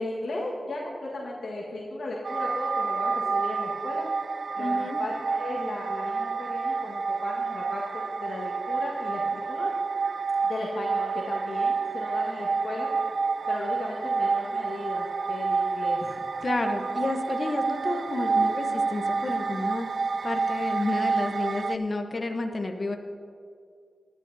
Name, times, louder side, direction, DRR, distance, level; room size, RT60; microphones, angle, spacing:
voice 1, 0.0-4.0 4.6-9.7 10.4-12.9 13.5-16.2, left 2 dB, 85° left, -5 dB, 1.6 m, -35 dB
sound 1, 2.2-21.8, right 4 dB, 60° right, 0.3 m, -29 dB
voice 2, 4.6-5.0 16.4-19.9 20.2-23.0, left 2 dB, 40° left, 5 dB, 1.0 m, -30 dB
19.5 x 11.5 x 2.7 m, 2.3 s
wide cardioid pair, 90°, 0 cm